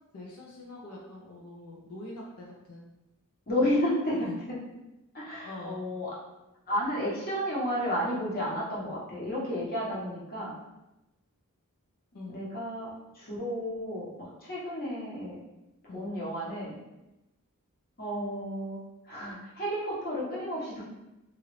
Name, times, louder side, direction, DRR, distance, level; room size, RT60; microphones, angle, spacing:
voice 1, 0.1-2.9 4.3-4.4 5.4-5.9 12.1-12.4 15.9-16.1, left 2 dB, 80° left, -3 dB, 0.6 m, -44 dB
voice 2, 3.5-4.6 5.1-6.1 6.7-10.5 12.3-15.4 15.9-16.7 18.0-18.8 19.1-20.8, equal, 45° left, -6 dB, 1.0 m, -32 dB
3.0 x 2.5 x 3.1 m, 0.97 s
head